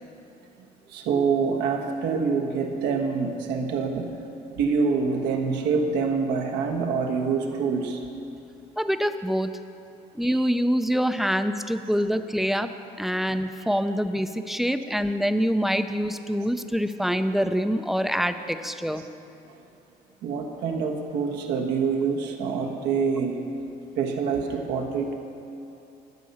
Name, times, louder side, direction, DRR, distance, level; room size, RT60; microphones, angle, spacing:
voice 1, 0.9-4.1 4.5-8.0 10.2-10.5 13.7-13.8 19.0-19.1 19.5-19.6 20.2-23.5 24.0-25.1, right 5 dB, 90° right, 2 dB, 1.2 m, -26 dB
voice 2, 8.8-9.5 10.1-12.7 13.0-19.0, equal, ahead, 9 dB, 0.4 m, -25 dB
13.5 x 5.3 x 7.0 m, 2.7 s
cardioid pair, 110°, 17 cm